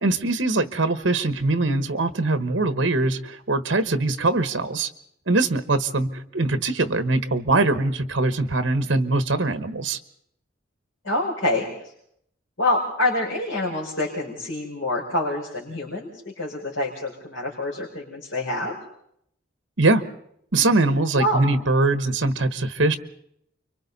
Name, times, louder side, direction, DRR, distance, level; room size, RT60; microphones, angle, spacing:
voice 1, 0.0-4.9 5.3-10.0 19.8-20.0 20.5-23.0, right 2 dB, 65° right, 10 dB, 1.2 m, -22 dB
voice 2, 11.0-11.7 12.6-16.1 16.4-18.7 21.1-21.4, left 1 dB, 70° left, -5 dB, 5.1 m, -26 dB
29.5 x 24.5 x 4.1 m, 0.72 s
head